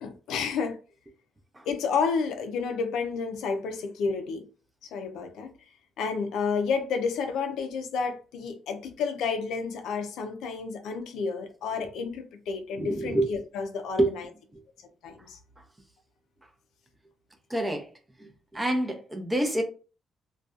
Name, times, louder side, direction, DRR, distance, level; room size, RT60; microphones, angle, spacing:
voice 1, 0.0-0.8 1.7-4.4 4.9-5.5 6.0-14.3 15.0-15.4, left 5 dB, 85° left, 0.4 m, -30 dB
voice 2, 12.8-13.3 14.0-14.1 17.5-17.9 18.5-19.6, right 1 dB, 15° right, 0.6 m, -26 dB
2.5 x 2.2 x 2.3 m
cardioid pair, 90°, 0 cm